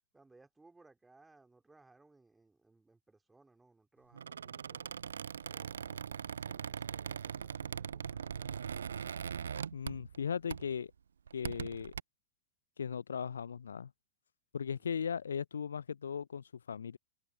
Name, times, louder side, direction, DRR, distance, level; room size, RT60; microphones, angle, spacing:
voice 1, 0.1-5.0 14.6-15.0, right 3 dB, 10° right, 2.9 m, -64 dB
Squeak, 4.1-10.2 10.5-10.8 11.3-12.0, right 7 dB, 70° right, 0.4 m, -41 dB
voice 2, 9.7-10.9 11.3-11.9 12.8-13.9 14.5-17.0, left 7 dB, 70° left, 0.6 m, -37 dB
figure-of-eight pair, 90°, 0 cm